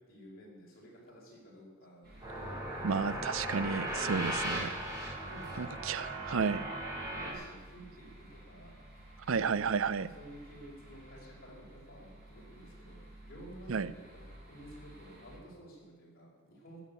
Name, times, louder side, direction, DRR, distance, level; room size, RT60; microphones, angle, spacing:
voice 1, 0.1-3.3 5.2-5.9 7.1-9.5 10.1-16.8, equal, 45° left, -4 dB, 5.3 m, -52 dB
sound 1, 2.0-15.4, right 1 dB, 50° right, 4.9 m, -54 dB
sound 2, 2.2-7.3, right 1 dB, 15° right, 4.4 m, -37 dB
voice 2, 2.8-4.7 5.6-6.6 9.3-10.1 13.7-13.9, right 5 dB, 75° right, 17 dB, 0.5 m, -32 dB
14.5 x 7.2 x 9.6 m, 1.3 s
head